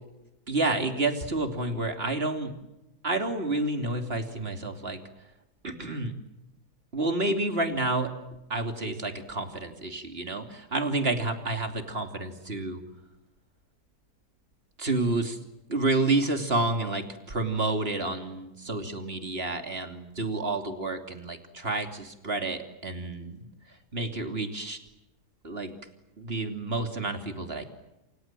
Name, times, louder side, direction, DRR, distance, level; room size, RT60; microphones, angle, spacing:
voice 1, 0.5-2.5 3.0-5.0 5.6-6.1 6.9-8.1 8.5-12.8 14.8-15.4 15.7-24.8 25.4-25.7 26.2-27.7, right 2 dB, 35° right, 6 dB, 3.2 m, -29 dB
28.0 x 27.5 x 7.6 m, 0.96 s
omnidirectional pair, 1.7 m